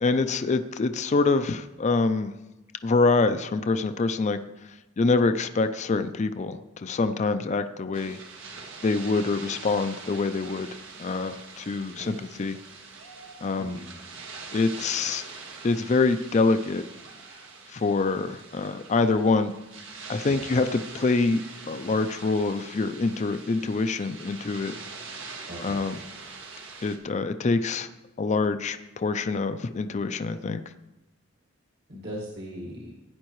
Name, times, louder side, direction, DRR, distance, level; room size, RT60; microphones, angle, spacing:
voice 1, 0.0-2.3 2.8-4.4 5.0-8.2 8.8-10.7 11.0-12.6 13.4-13.8 14.5-15.2 15.6-16.8 17.7-19.5 20.1-24.7 25.6-26.0 26.8-27.9 28.2-30.6, left 3 dB, 35° left, 10 dB, 0.4 m, -25 dB
sound 1, 7.9-27.0, right 4 dB, 85° right, 1.5 m, -43 dB
voice 2, 25.5-25.8 31.9-32.9, equal, 60° right, -4 dB, 1.8 m, -39 dB
16.0 x 9.5 x 3.1 m, 1.0 s
head